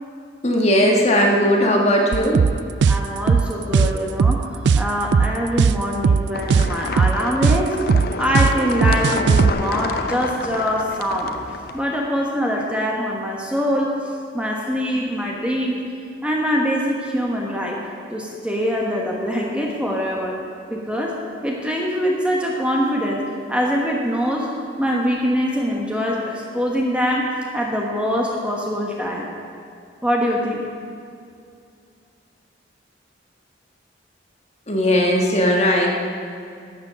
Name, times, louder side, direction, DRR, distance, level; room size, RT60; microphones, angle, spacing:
voice 1, 0.4-2.4 34.7-35.9, equal, 35° left, 0 dB, 1.5 m, -17 dB
sound 1, 2.1-9.5, right 5 dB, 65° right, 0.3 m, -17 dB
voice 2, 2.9-4.5 4.7-7.8 8.2-11.4 11.7-13.9 14.3-15.8 16.2-17.8 18.1-20.4 20.7-21.1 21.4-23.2 23.5-24.5 24.8-29.3 30.0-30.6, equal, 5° right, -2 dB, 1.2 m, -23 dB
sound 2, 6.3-11.8, left 3 dB, 50° left, 0.6 m, -29 dB
12.5 x 8.0 x 6.8 m, 2.4 s
head